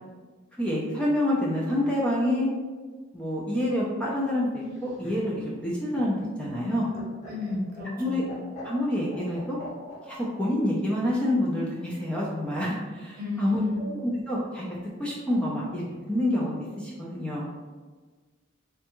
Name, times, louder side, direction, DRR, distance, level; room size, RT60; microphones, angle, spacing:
voice 1, 0.5-2.5 3.1-6.9 8.0-8.2 8.6-9.6 10.0-13.6 13.9-14.7 15.0-17.4, left 1 dB, 5° left, -5 dB, 0.4 m, -27 dB
Laughter, 4.6-10.3 11.6-12.2, left 1 dB, 35° left, 1.3 m, -45 dB
voice 2, 7.3-8.2 13.2-13.8, left 3 dB, 50° right, -3 dB, 0.8 m, -32 dB
3.4 x 2.2 x 2.9 m, 1.4 s
head